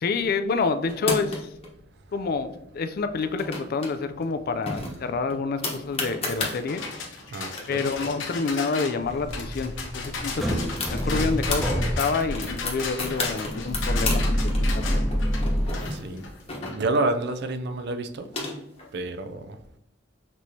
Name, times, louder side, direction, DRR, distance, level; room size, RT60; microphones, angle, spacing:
voice 1, 0.0-1.5 2.1-6.8 7.7-14.5, left 4 dB, 50° left, 10 dB, 0.4 m, -28 dB
sound 1, 0.9-1.7 3.1-3.9 4.2-4.3 4.7-6.6 7.2-7.3 7.5-9.3 9.6-9.7 10.0-11.6 12.0-14.2 14.5-17.1 17.9-18.9, left 3 dB, 30° left, 1.1 m, -32 dB
sound 2, 6.4-16.8, left 4 dB, 75° left, 0.9 m, -36 dB
voice 2, 7.3-7.9 15.9-16.2 16.7-18.3 18.9-19.6, right 2 dB, 60° right, 9 dB, 0.4 m, -29 dB
sound 3, 9.0-15.7, equal, ahead, 0.8 m, -27 dB
6.0 x 3.1 x 2.7 m, 0.78 s
head